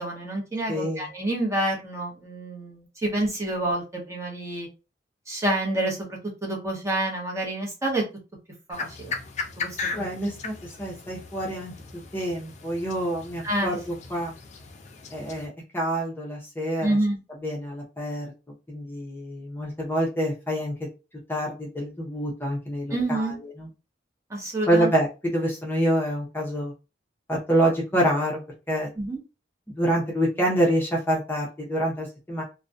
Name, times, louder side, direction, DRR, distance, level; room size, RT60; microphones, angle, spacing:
voice 1, 0.0-4.7 5.3-8.0 8.7-9.1 9.6-10.0 13.4-13.8 16.8-17.2 22.9-23.4 24.3-24.9 29.0-29.2, right 1 dB, 15° right, -2 dB, 0.8 m, -28 dB
voice 2, 0.7-1.1 9.9-10.5 10.8-11.7 12.1-14.3 15.1-17.0 17.4-18.3 18.7-20.7 21.3-23.7 24.7-26.7 27.3-28.4 28.7-28.9 29.8-32.4, right 1 dB, 15° left, -3 dB, 0.7 m, -26 dB
sound 1, 8.7-15.5, left 4 dB, 40° left, 0.4 m, -37 dB
2.4 x 2.1 x 2.5 m, 0.29 s
head